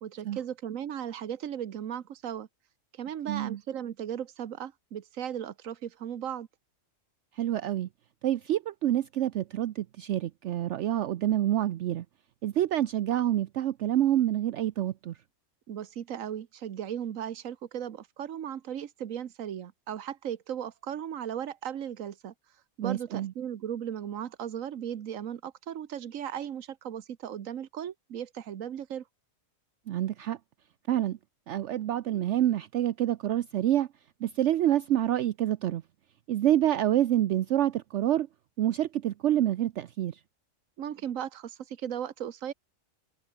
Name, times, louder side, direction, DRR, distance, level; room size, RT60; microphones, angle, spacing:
voice 1, 0.0-2.5 2.9-6.5 15.7-22.3 22.8-29.0 40.8-42.5, right 9 dB, 85° right, 1.4 m, -36 dB
voice 2, 3.3-3.6 7.3-7.9 8.2-12.0 12.4-15.2 22.8-23.3 29.9-30.4 30.9-31.2 31.5-33.9 34.2-35.8 36.3-38.3 38.6-40.2, right 12 dB, 65° right, 0.9 m, -27 dB
omnidirectional pair, 1.4 m